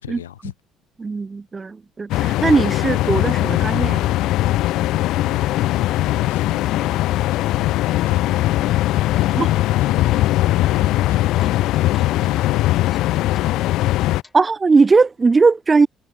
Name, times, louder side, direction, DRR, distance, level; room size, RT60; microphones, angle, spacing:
voice 1, 0.0-0.5 5.1-7.0 7.3-8.6 9.1-11.4 11.9-13.1, left 11 dB, 85° left, 1.4 m, -38 dB
voice 2, 1.0-4.1 9.4-9.5 14.3-15.9, right 4 dB, 30° right, 0.5 m, -18 dB
sound 1, 2.1-14.2, left 16 dB, 65° left, 0.7 m, -19 dB
sound 2, 11.4-12.3 12.8-13.6 13.9-14.4, left 3 dB, 20° left, 6.5 m, -50 dB
hypercardioid pair, 50°, 0 cm